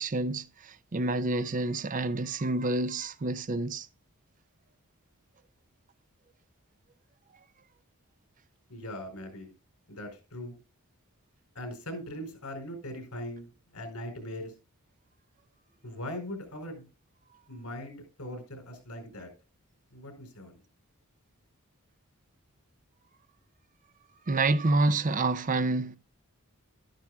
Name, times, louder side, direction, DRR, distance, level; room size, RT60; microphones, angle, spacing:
voice 1, 0.0-3.9 24.3-26.0, right 2 dB, 35° right, 0.6 m, -28 dB
voice 2, 8.7-9.5 9.9-10.6 11.5-14.5 15.8-16.9 17.5-19.3 19.9-20.6, left 1 dB, 90° left, 4.5 m, -40 dB
12.0 x 11.5 x 2.4 m
head